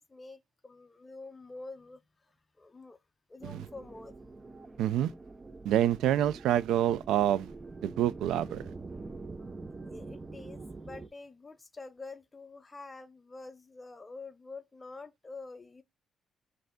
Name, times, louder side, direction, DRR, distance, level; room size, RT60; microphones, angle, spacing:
voice 1, 0.0-2.0 2.6-3.0 3.3-4.1 9.9-15.8, left 3 dB, 25° left, 0.5 m, -47 dB
sound 1, 3.4-11.1, right 3 dB, 25° right, 0.5 m, -45 dB
voice 2, 4.8-5.1 5.6-7.5 7.8-8.6, right 11 dB, 85° right, 0.3 m, -27 dB
5.4 x 2.6 x 3.6 m
cardioid pair, 90°, 0 cm